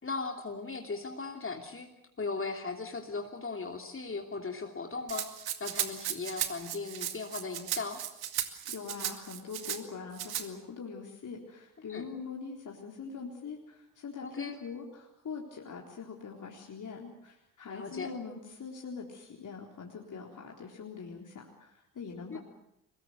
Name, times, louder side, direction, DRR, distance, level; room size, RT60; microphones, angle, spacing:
voice 1, 0.0-1.9 2.2-5.3 5.6-8.0 11.9-12.0 14.2-14.6 17.7-18.1 22.3-22.4, left 4 dB, 30° left, 3 dB, 2.9 m, -37 dB
Rattle (instrument), 5.1-9.8 10.2-10.5, right 11 dB, 55° right, 2.2 m, -36 dB
voice 2, 8.7-22.4, left 5 dB, 45° left, 0 dB, 4.0 m, -43 dB
23.0 x 22.0 x 8.0 m, 0.85 s
hypercardioid pair, 50°, 44 cm